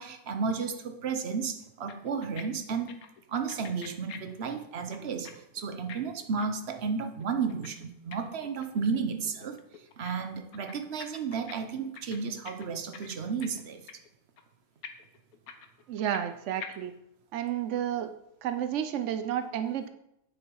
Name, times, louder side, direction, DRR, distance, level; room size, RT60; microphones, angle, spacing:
voice 1, 0.0-2.9 3.3-9.6 10.0-13.8, right 5 dB, 45° right, 7 dB, 0.9 m, -33 dB
Wah Wah guitar, 1.6-1.7 1.9-2.4 2.7-5.3 5.6-9.0 9.2-10.1 10.4-11.5 11.8-13.6 13.9-14.1 14.4-14.5 14.8-16.3 16.6-16.7, left 8 dB, 60° left, 1.2 m, -45 dB
voice 2, 15.9-16.9 17.3-18.1 18.4-19.9, right 10 dB, 85° right, 10 dB, 0.6 m, -31 dB
8.9 x 7.0 x 4.7 m, 0.81 s
omnidirectional pair, 1.9 m